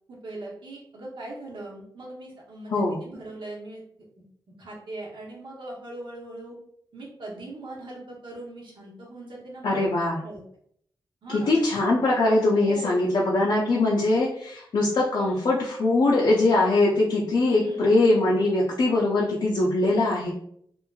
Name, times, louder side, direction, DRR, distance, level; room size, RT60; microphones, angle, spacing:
voice 1, 0.1-3.8 4.6-6.6 6.9-9.8 10.2-10.4 11.2-11.7 12.6-13.1 15.2-15.4 17.5-17.9, right 2 dB, 75° right, -3 dB, 0.9 m, -40 dB
voice 2, 9.6-10.2 11.3-20.3, left 2 dB, 65° left, -4 dB, 0.5 m, -22 dB
3.0 x 2.5 x 2.3 m, 0.67 s
wide cardioid pair, 110°, 8 cm